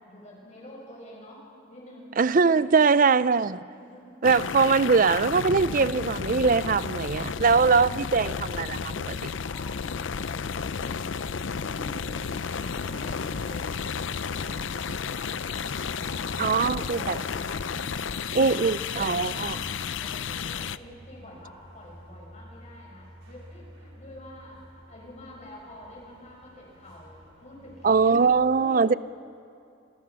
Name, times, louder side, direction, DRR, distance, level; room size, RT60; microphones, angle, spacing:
voice 1, 0.0-2.1 2.7-3.0 3.6-4.1 9.3-11.1 11.5-12.3 12.6-13.7 14.3-18.6 19.2-19.7 20.0-27.9 28.6-29.0, left 1 dB, 35° left, 7.9 m, -47 dB
voice 2, 2.2-3.6 4.2-9.2 16.4-17.2 18.3-19.5 27.8-28.9, right 5 dB, 45° right, 0.5 m, -22 dB
sound 1, 4.2-20.8, left 6 dB, 75° left, 0.6 m, -32 dB
sound 2, 12.2-28.3, right 1 dB, 90° right, 5.8 m, -49 dB
28.5 x 26.5 x 6.3 m
head